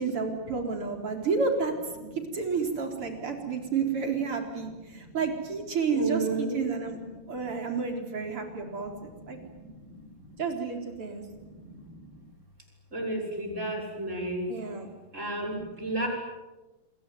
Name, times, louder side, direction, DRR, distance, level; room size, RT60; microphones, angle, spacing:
voice 1, 0.0-1.7 2.0-7.0 7.3-9.4 10.4-11.2 14.5-14.9, right 5 dB, 85° right, 4 dB, 4.9 m, -30 dB
voice 2, 5.9-6.6 11.6-11.7 12.9-14.5 15.1-16.1, right 2 dB, 30° right, 1 dB, 6.8 m, -31 dB
28.5 x 22.5 x 9.4 m, 1.1 s
omnidirectional pair, 2.4 m